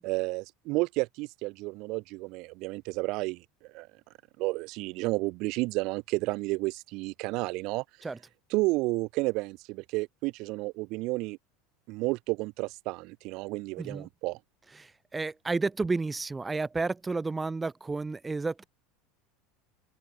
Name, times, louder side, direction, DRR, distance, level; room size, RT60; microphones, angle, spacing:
voice 1, 0.0-3.4 3.7-3.9 4.4-7.8 8.5-11.4 11.9-14.4, right 23 dB, 60° right, 1.8 m, -31 dB
voice 2, 13.8-14.1 14.7-18.6, right 3 dB, 15° right, 1.2 m, -31 dB
open air
hypercardioid pair, 100°, 0 cm